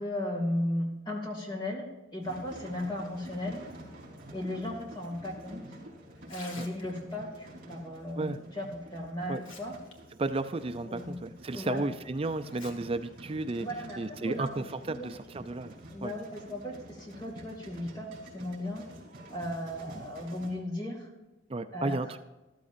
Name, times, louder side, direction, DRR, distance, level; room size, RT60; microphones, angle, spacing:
voice 1, 0.0-3.6 4.3-5.8 6.3-9.7 10.9-11.1 11.5-11.9 13.6-15.1 15.9-18.8 19.3-21.1 21.7-22.0, left 1 dB, 20° left, 0 dB, 2.2 m, -36 dB
sound 1, 2.2-20.5, right 1 dB, 45° right, 4.0 m, -49 dB
Tearing, 6.2-7.2 8.6-8.7 9.2-9.9 10.3-10.4 11.1-11.2 12.4-12.7 13.1-13.2 14.1-14.3, left 3 dB, 75° left, 1.8 m, -48 dB
voice 2, 10.2-13.7 14.0-15.7 16.0-16.1 20.0-20.1 21.5-22.3, right 2 dB, 30° right, 10 dB, 0.4 m, -33 dB
13.5 x 13.5 x 2.6 m, 1.1 s
head